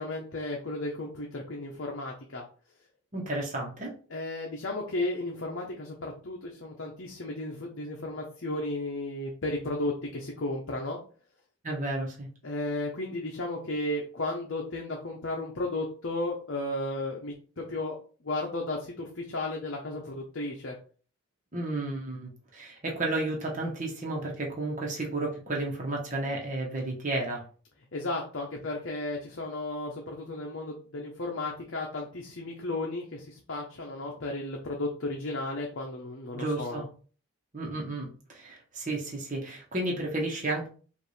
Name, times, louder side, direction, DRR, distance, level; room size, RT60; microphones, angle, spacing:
voice 1, 0.0-2.4 4.1-11.0 12.4-18.0 18.2-20.7 27.9-36.9, left 2 dB, 60° left, -1 dB, 0.8 m, -34 dB
voice 2, 3.1-3.9 11.6-12.3 21.5-27.4 36.3-36.8 37.5-40.7, right 2 dB, 35° right, -1 dB, 1.1 m, -32 dB
5.1 x 2.6 x 3.2 m, 0.40 s
head